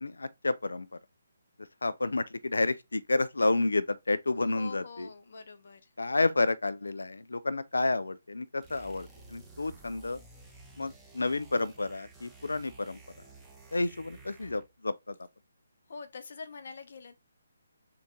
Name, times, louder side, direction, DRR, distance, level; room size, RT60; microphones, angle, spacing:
voice 1, 0.0-0.9 1.8-5.1 6.0-10.2 10.8-13.0 13.7-15.1, left 2 dB, 80° left, 0.4 m, -30 dB
voice 2, 4.4-5.9 15.9-17.1, left 4 dB, 55° left, 0.9 m, -45 dB
sound 1, 8.6-14.8, right 3 dB, 5° right, 0.8 m, -53 dB
3.8 x 2.5 x 3.6 m
figure-of-eight pair, 145°, 0 cm